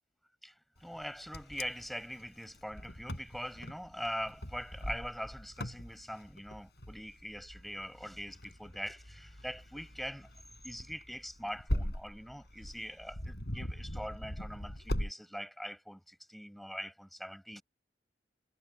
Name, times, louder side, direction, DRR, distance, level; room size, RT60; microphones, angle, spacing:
voice 1, 0.4-10.3 10.6-17.6, equal, ahead, 7.3 m, -43 dB
Wind, 0.9-15.1, equal, 60° left, 7.5 m, -41 dB
head